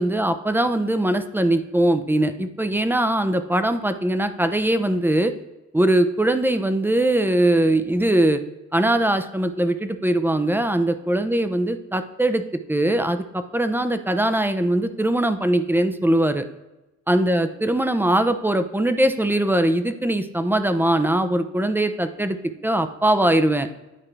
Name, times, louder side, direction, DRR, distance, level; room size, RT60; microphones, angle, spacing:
voice 1, 0.0-5.3 5.7-8.4 8.7-16.5 17.1-23.7, right 1 dB, 5° right, 9 dB, 0.5 m, -21 dB
9.9 x 4.5 x 3.2 m, 1.0 s
cardioid pair, 90°, 30 cm